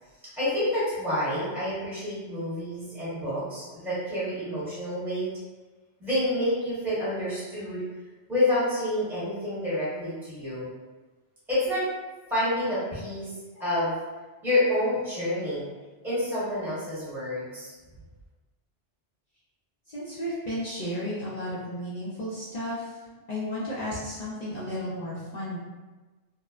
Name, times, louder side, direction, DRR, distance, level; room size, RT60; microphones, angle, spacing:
voice 1, 0.4-5.3 6.0-7.8 8.3-10.7 11.5-11.8 12.3-14.0 14.4-15.6 16.0-17.7, left 1 dB, ahead, -11 dB, 0.9 m, -28 dB
voice 2, 19.9-22.9 23.3-25.6, equal, 50° left, -9 dB, 0.5 m, -33 dB
2.8 x 2.0 x 2.4 m, 1.3 s
omnidirectional pair, 1.2 m